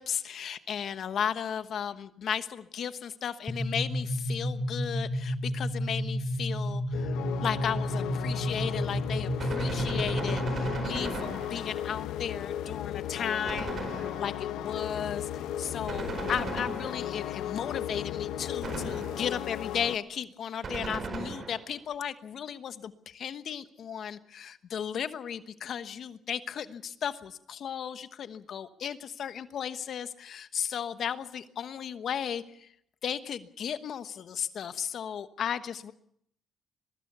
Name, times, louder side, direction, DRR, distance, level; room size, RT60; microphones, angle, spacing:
voice 1, 0.0-7.2 7.4-32.7 33.0-35.9, left 8 dB, 65° left, 11 dB, 1.2 m, -35 dB
sound 1, 3.5-11.0, equal, 5° left, 2.2 m, -31 dB
sound 2, 6.9-20.0, left 11 dB, 90° left, 1.0 m, -36 dB
Gunshot gunfire, 9.4-11.9 13.5-14.5 15.9-17.3 18.6-19.4 20.6-21.8, right 3 dB, 45° right, 4.6 m, -37 dB
23.0 x 20.0 x 6.9 m, 0.71 s
cardioid pair, 90°, 0 cm